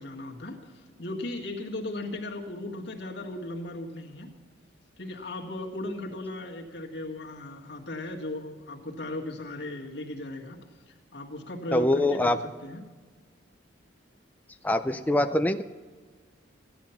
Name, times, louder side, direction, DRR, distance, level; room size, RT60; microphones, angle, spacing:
voice 1, 0.0-4.3 5.0-10.6 10.9-12.9, left 1 dB, 60° left, 1 dB, 1.7 m, -37 dB
voice 2, 11.7-12.4 14.6-15.6, left 1 dB, 10° left, 9 dB, 0.3 m, -24 dB
15.0 x 10.5 x 5.8 m, 1.4 s
head